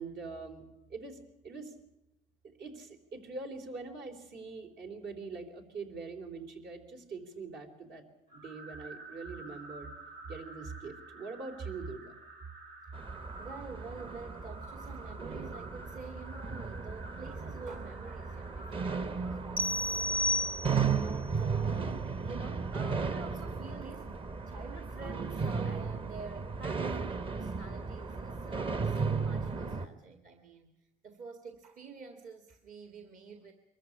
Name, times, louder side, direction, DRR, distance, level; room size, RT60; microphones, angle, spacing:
voice 1, 0.0-1.7 2.4-8.0 8.3-9.9 10.3-12.2, right 4 dB, 70° right, 3 dB, 3.7 m, -43 dB
sound 1, 8.3-21.6, right 2 dB, 85° right, 6.1 m, -51 dB
sound 2, 12.9-29.9, right 5 dB, 30° right, 1.0 m, -35 dB
voice 2, 13.4-20.1 21.0-22.0 22.2-33.5, right 4 dB, 50° right, 5 dB, 1.9 m, -48 dB
sound 3, 19.6-21.1, left 1 dB, 10° right, 0.7 m, -31 dB
23.0 x 14.5 x 10.0 m, 0.90 s
cardioid pair, 110°, 17 cm